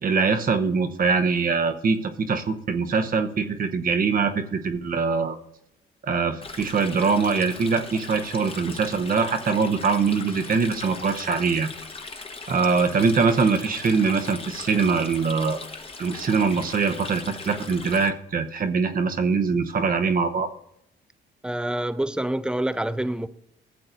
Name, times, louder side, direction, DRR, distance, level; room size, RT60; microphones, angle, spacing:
voice 1, 0.0-5.4 6.0-11.7 12.5-15.6 16.0-20.5, right 5 dB, 45° right, 0.9 m, -23 dB
Stream, 6.4-18.1, left 3 dB, 30° left, 1.2 m, -39 dB
voice 2, 21.4-23.3, right 1 dB, 5° right, 0.4 m, -26 dB
15.0 x 7.6 x 2.7 m
cardioid pair, 90°, 20 cm